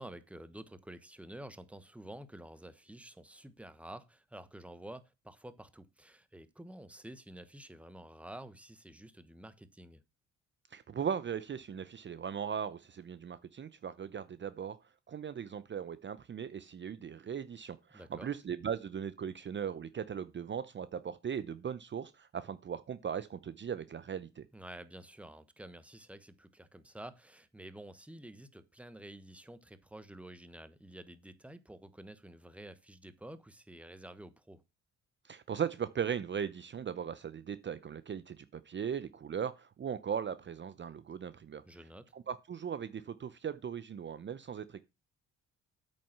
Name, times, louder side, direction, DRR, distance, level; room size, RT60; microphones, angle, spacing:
voice 1, 0.0-10.0 17.9-18.3 24.5-34.6 41.6-42.1, right 1 dB, 5° right, 1.2 m, -50 dB
voice 2, 10.7-14.8 15.1-24.4 35.3-41.6 42.1-44.8, right 8 dB, 40° right, 0.7 m, -38 dB
8.6 x 6.3 x 5.9 m
cardioid pair, 90°, 30 cm